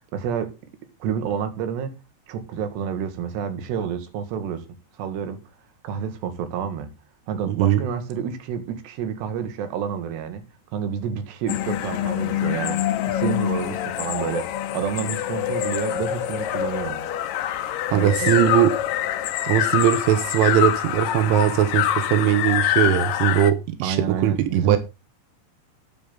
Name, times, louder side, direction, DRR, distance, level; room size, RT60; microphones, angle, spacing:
voice 1, 0.1-0.5 1.0-2.0 2.3-4.6 5.0-5.4 5.8-6.9 7.3-10.4 10.7-12.8 13.1-17.0 17.9-18.5 23.8-24.8, right 7 dB, 70° right, 3.9 m, -29 dB
voice 2, 7.5-7.8 17.9-18.7 19.4-24.8, right 11 dB, 90° right, 3.5 m, -20 dB
sound 1, 11.5-23.5, left 12 dB, 85° left, 1.9 m, -25 dB
12.5 x 10.0 x 3.9 m
omnidirectional pair, 5.4 m